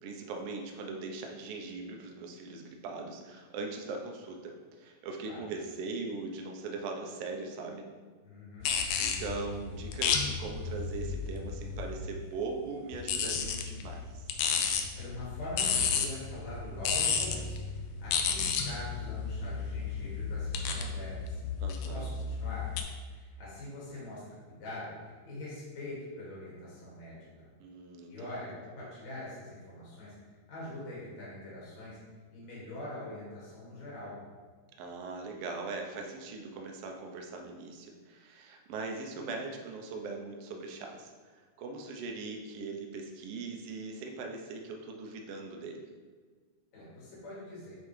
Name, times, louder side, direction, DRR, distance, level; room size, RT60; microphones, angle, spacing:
voice 1, 0.0-7.8 8.6-14.3 21.6-22.0 27.6-28.4 34.8-45.8, right 3 dB, 75° right, 2 dB, 1.4 m, -40 dB
voice 2, 8.2-8.7 15.0-21.4 21.9-22.7 23.1-27.5 28.1-32.0 32.3-34.2 46.7-47.8, left 1 dB, 60° left, -8 dB, 3.3 m, -43 dB
sound 1, 8.6-12.1 12.9-22.8, left 6 dB, 80° left, 1.6 m, -33 dB
9.0 x 4.2 x 3.2 m, 1.5 s
omnidirectional pair, 3.5 m